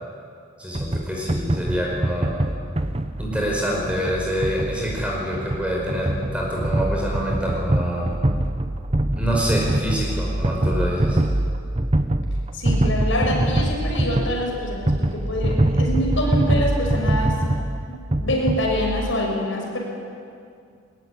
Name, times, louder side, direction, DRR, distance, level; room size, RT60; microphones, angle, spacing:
voice 1, 0.6-2.3 3.2-8.1 9.2-11.2, equal, 5° right, -2 dB, 5.2 m, -26 dB
sound 1, 0.7-19.1, right 1 dB, 30° right, 1.0 m, -24 dB
voice 2, 12.5-17.4 17.9-19.8, left 1 dB, 65° left, -1 dB, 6.2 m, -25 dB
21.5 x 21.0 x 9.7 m, 2.4 s
head